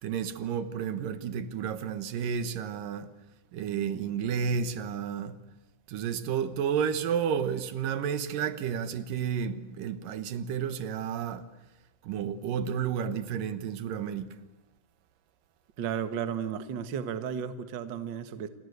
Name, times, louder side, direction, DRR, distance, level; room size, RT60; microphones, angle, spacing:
voice 1, 0.0-3.1 3.5-5.4 5.9-11.4 12.0-14.3, right 7 dB, 80° right, 2.9 m, -31 dB
voice 2, 15.8-18.5, right 8 dB, 50° right, 1.5 m, -33 dB
28.0 x 24.5 x 8.1 m
omnidirectional pair, 3.8 m